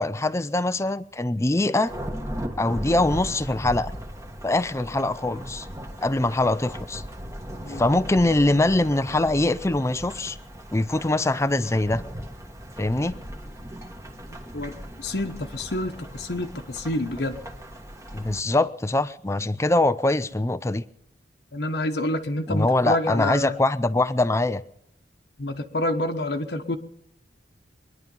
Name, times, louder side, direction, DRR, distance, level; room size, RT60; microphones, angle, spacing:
voice 1, 0.0-1.9 2.6-3.9 4.4-5.7 6.0-7.0 7.7-10.4 10.7-12.0 12.8-13.2 18.1-20.8 22.5-24.6, left 2 dB, 15° left, 0.5 m, -23 dB
Thunderstorm / Rain, 1.9-18.4, equal, 15° right, 1.5 m, -38 dB
voice 2, 15.0-17.4 21.5-23.5 25.4-26.8, left 1 dB, 65° left, 1.2 m, -28 dB
23.5 x 11.0 x 5.5 m
head